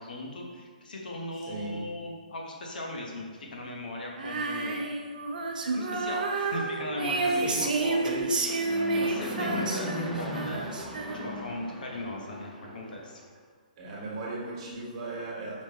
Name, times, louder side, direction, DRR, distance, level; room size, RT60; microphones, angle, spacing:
voice 1, 0.0-4.8 5.7-10.8 11.1-13.2, left 1 dB, 75° left, 0 dB, 0.9 m, -38 dB
voice 2, 1.4-1.8 7.3-7.6 8.0-8.2 13.8-15.6, right 2 dB, 40° right, -4 dB, 1.1 m, -37 dB
Female singing, 4.2-11.5, right 3 dB, 70° right, 0.5 m, -30 dB
Fixed-wing aircraft airplane, 5.9-13.3, left 1 dB, ahead, 0.3 m, -39 dB
5.0 x 2.1 x 3.4 m, 1.5 s
hypercardioid pair, 150°, 5 cm